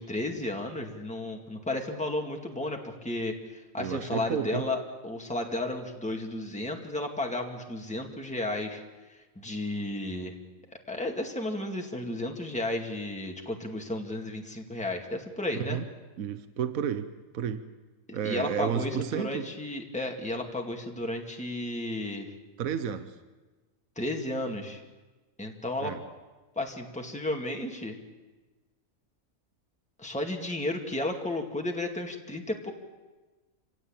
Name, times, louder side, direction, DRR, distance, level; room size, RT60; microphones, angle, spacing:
voice 1, 0.0-4.8 5.0-8.8 9.4-10.4 10.9-15.8 18.1-22.3 24.0-24.8 25.4-26.0 26.6-28.0 30.0-32.7, left 1 dB, 5° left, 2 dB, 2.1 m, -33 dB
voice 2, 3.8-4.7 15.5-15.9 16.2-17.7 18.1-19.5 22.6-23.1 25.8-26.0, right 8 dB, 75° right, 11 dB, 1.4 m, -32 dB
27.0 x 16.5 x 8.8 m, 1.2 s
omnidirectional pair, 1.5 m